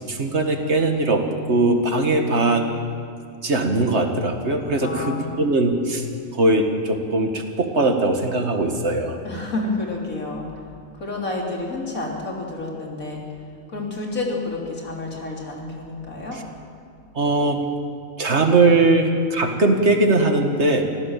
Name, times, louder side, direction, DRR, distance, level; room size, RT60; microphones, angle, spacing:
voice 1, 0.0-2.7 3.4-6.1 6.3-9.2 17.1-17.6 18.2-20.8, right 2 dB, 55° right, 4 dB, 2.0 m, -20 dB
voice 2, 4.8-5.5 9.2-10.5 10.9-13.2 13.7-16.4, left 2 dB, 85° left, -1 dB, 3.8 m, -29 dB
25.0 x 16.0 x 7.3 m, 2.3 s
omnidirectional pair, 1.4 m